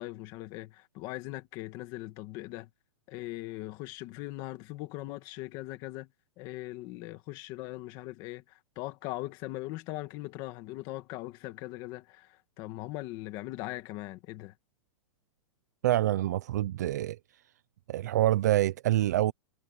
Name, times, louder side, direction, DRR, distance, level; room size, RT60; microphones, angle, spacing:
voice 1, 0.0-2.7 3.1-6.1 6.4-14.5, left 18 dB, 25° left, 1.7 m, -40 dB
voice 2, 15.8-17.2 17.9-19.3, right 14 dB, 30° right, 0.4 m, -26 dB
hypercardioid pair, 180°, 18 cm